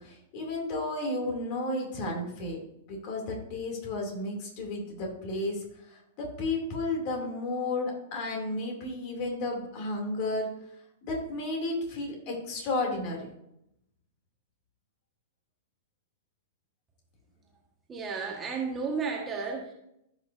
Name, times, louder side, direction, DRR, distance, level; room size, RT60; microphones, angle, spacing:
voice 1, 0.0-2.6 2.9-10.5 11.0-13.3, left 2 dB, 40° left, 1 dB, 2.8 m, -33 dB
voice 2, 17.9-19.7, right 5 dB, 20° right, 1 dB, 1.5 m, -33 dB
14.5 x 6.1 x 2.7 m, 0.80 s
figure-of-eight pair, 100°, 0 cm